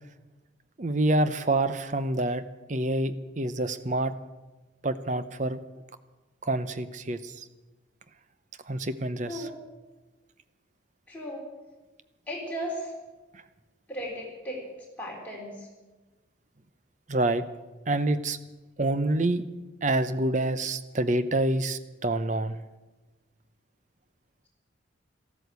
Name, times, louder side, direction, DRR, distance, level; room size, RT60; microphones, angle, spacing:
voice 1, 0.8-2.4 2.7-4.1 4.8-5.6 6.4-7.4 8.7-9.5 17.1-17.4 17.9-18.4 18.8-19.4 19.8-22.6, right 2 dB, 40° right, 12 dB, 0.7 m, -27 dB
voice 2, 11.1-11.5 12.3-12.9 13.9-14.7 15.0-15.7, equal, 10° left, -3 dB, 3.9 m, -36 dB
13.5 x 13.0 x 8.1 m, 1.2 s
head